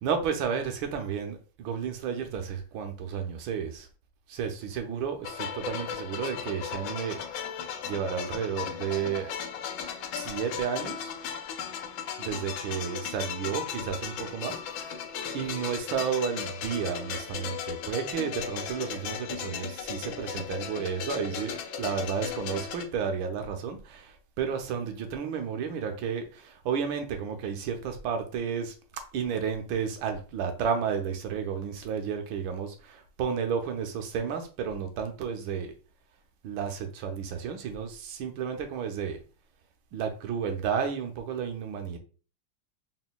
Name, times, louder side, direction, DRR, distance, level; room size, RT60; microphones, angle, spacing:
voice 1, 0.0-3.9 4.3-7.2 7.8-9.3 10.2-11.1 12.2-14.6 15.3-28.7 29.1-35.7 36.4-39.2 39.9-42.0, right 7 dB, 70° right, 1.4 m, -32 dB
sound 1, 5.2-22.9, left 8 dB, 75° left, 1.3 m, -36 dB
4.2 x 3.9 x 2.2 m
omnidirectional pair, 2.4 m